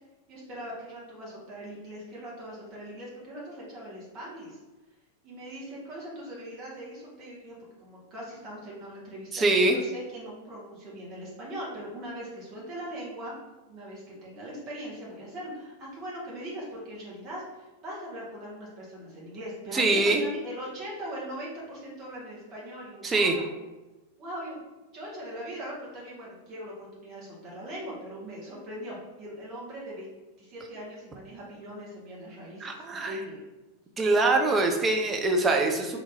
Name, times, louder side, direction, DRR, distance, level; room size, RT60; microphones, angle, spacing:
voice 1, 0.3-4.6 5.2-13.3 13.7-23.5 24.2-24.6 24.9-30.1 30.4-33.4, right 1 dB, 35° right, -5 dB, 1.2 m, -40 dB
voice 2, 9.3-9.8 19.7-20.2 23.0-23.4 32.6-33.1 34.0-36.0, right 2 dB, 20° right, 3 dB, 0.5 m, -23 dB
2.8 x 2.7 x 3.5 m, 1.1 s
figure-of-eight pair, 90°, 0 cm